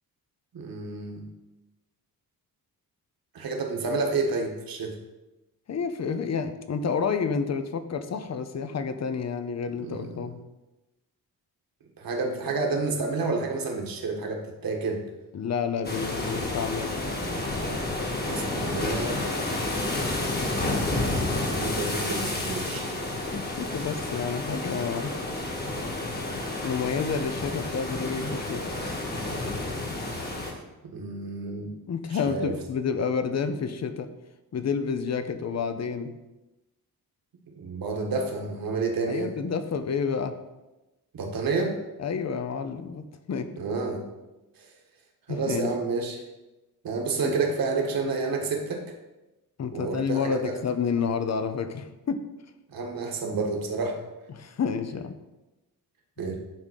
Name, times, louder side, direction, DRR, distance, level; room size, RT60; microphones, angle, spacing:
voice 1, 0.5-1.2 3.3-5.0 9.8-10.2 12.0-15.1 18.2-19.2 21.0-23.0 30.9-31.7 32.1-32.5 37.5-39.3 41.1-41.8 43.6-44.0 44.6-44.7 45.3-46.2 46.8-48.8 49.7-50.5 52.7-54.0 56.2-56.3, right 3 dB, 65° right, 2 dB, 1.8 m, -30 dB
voice 2, 5.7-10.5 15.3-17.0 23.3-25.2 26.6-28.7 31.9-34.1 34.5-36.2 39.1-40.4 42.0-43.6 45.3-45.7 47.2-47.4 49.6-52.2 54.3-55.2, left 6 dB, 45° left, 9 dB, 0.8 m, -29 dB
sound 1, 15.8-30.5, left 2 dB, 25° left, 1.5 m, -30 dB
10.5 x 3.8 x 6.4 m, 1.0 s
wide cardioid pair, 155°, 38 cm